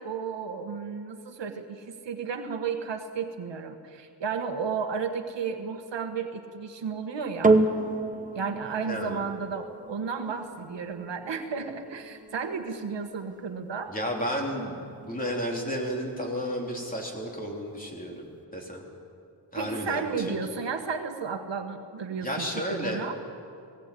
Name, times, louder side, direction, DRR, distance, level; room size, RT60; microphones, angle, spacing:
voice 1, 0.0-7.6 8.3-14.0 19.5-23.2, right 5 dB, 90° right, 6 dB, 1.5 m, -33 dB
sound 1, 7.4-16.0 16.7-16.8, right 2 dB, 20° right, 1.1 m, -30 dB
voice 2, 8.8-9.3 13.9-18.2 18.5-18.8 19.5-20.4 22.2-23.1, equal, 20° left, -1 dB, 3.4 m, -32 dB
18.0 x 18.0 x 8.5 m, 2.5 s
wide cardioid pair, 125°, 42 cm